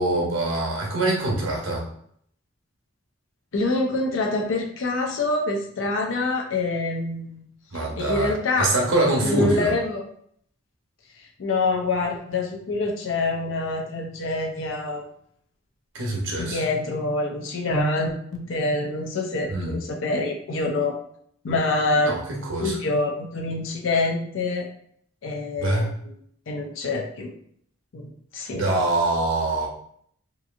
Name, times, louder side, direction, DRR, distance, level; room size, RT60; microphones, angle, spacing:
voice 1, 0.0-1.8 7.7-9.7 15.9-16.6 19.5-19.7 22.0-22.8 25.6-25.9 28.5-29.7, right 2 dB, 80° right, -1 dB, 0.9 m, -24 dB
voice 2, 3.5-7.4 7.7-8.7 9.2-10.1 11.4-15.0 16.4-21.0 21.4-22.2 22.6-24.7 25.2-26.2 26.5-27.3 27.9-28.7, left 2 dB, 75° left, 1 dB, 0.5 m, -26 dB
2.8 x 2.5 x 2.4 m, 0.66 s
head